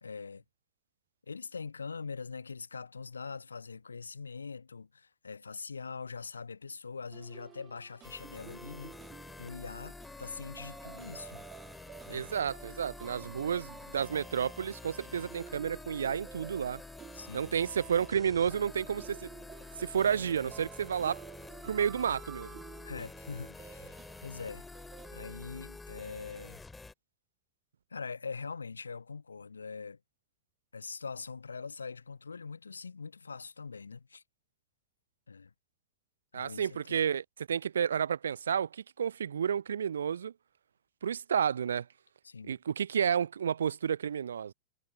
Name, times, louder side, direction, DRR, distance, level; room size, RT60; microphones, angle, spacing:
voice 1, 0.0-0.4 1.3-8.9 9.4-11.5 12.1-12.3 13.3-13.6 15.0-15.4 17.1-17.5 22.8-24.7 25.1-26.6 27.9-30.0 30.7-34.2 35.3-35.5 36.3-37.1 42.2-42.6, left 5 dB, 75° left, 1.0 m, -43 dB
sound 1, 7.1-25.9, right 10 dB, 25° right, 2.1 m, -53 dB
sound 2, 8.0-26.9, left 3 dB, 10° left, 2.3 m, -48 dB
voice 2, 12.1-16.8 17.3-19.3 19.8-21.2 21.6-22.6 36.3-40.3 41.0-41.9 42.5-44.5, right 8 dB, 70° right, 0.4 m, -31 dB
figure-of-eight pair, 90°, 0 cm